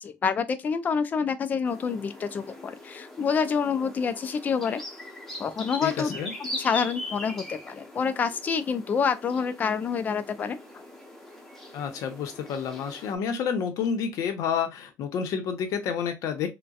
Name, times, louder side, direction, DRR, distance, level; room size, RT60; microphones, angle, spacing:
voice 1, 0.0-4.8 5.4-10.8, left 6 dB, 25° left, 0.4 m, -28 dB
sound 1, 1.6-13.1, left 1 dB, 5° left, 0.8 m, -41 dB
voice 2, 5.8-6.3 11.7-16.5, left 7 dB, 60° left, 0.8 m, -29 dB
4.0 x 2.2 x 2.3 m
cardioid pair, 170°, 6 cm